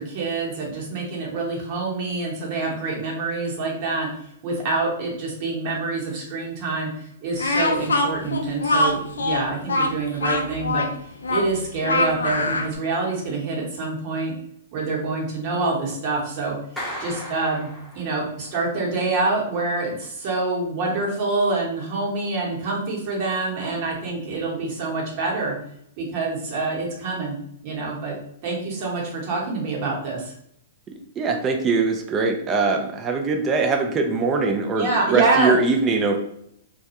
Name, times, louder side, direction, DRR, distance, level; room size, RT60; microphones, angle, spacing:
voice 1, 0.0-4.1 4.4-10.9 11.3-14.3 14.7-16.6 17.0-17.7 17.9-25.5 26.0-27.3 27.6-28.2 28.4-30.3 34.8-35.5, right 3 dB, 50° right, -2 dB, 0.9 m, -26 dB
Speech, 7.4-12.7, left 2 dB, 85° left, 0.4 m, -23 dB
Clapping, 16.8-18.5, equal, 5° left, 0.7 m, -35 dB
voice 2, 31.2-36.2, right 4 dB, 25° right, 2 dB, 0.3 m, -22 dB
2.2 x 2.2 x 2.8 m, 0.72 s
hypercardioid pair, 125°, 0 cm